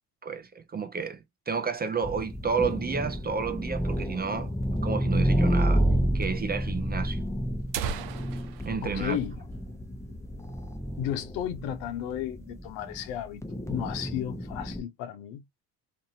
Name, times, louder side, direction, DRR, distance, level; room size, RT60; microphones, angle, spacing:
voice 1, 0.2-4.5 4.8-5.8 6.1-7.3 8.7-9.2, right 5 dB, 25° right, 0.4 m, -31 dB
sound 1, 1.5-3.4 3.7-3.8 4.0-4.1 4.8-4.9 5.8-5.9 6.2-6.3 7.1-7.2 7.5-10.1 10.4-10.6 11.0-11.2 11.6-12.2, right 6 dB, 65° right, 0.7 m, -39 dB
sound 2, 2.0-14.8, equal, 5° left, 0.7 m, -30 dB
voice 2, 8.8-9.3 11.0-13.4 13.7-15.4, left 10 dB, 75° left, 0.8 m, -33 dB
2.6 x 2.6 x 2.7 m
supercardioid pair, 75°, 45 cm